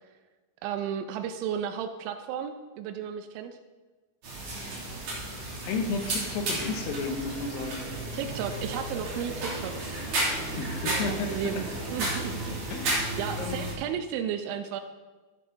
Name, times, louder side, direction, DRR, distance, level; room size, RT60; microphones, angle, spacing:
voice 1, 0.6-3.6 8.1-9.8 10.8-12.6 13.2-14.8, right 8 dB, 90° right, 7 dB, 3.0 m, -34 dB
sound 1, 4.2-13.7, right 2 dB, 45° right, 3.8 m, -33 dB
voice 2, 5.6-7.9 10.6-11.6 12.7-13.1 13.4-13.7, left 4 dB, 75° left, 4 dB, 2.2 m, -33 dB
13.5 x 10.0 x 3.9 m, 1.3 s
omnidirectional pair, 5.2 m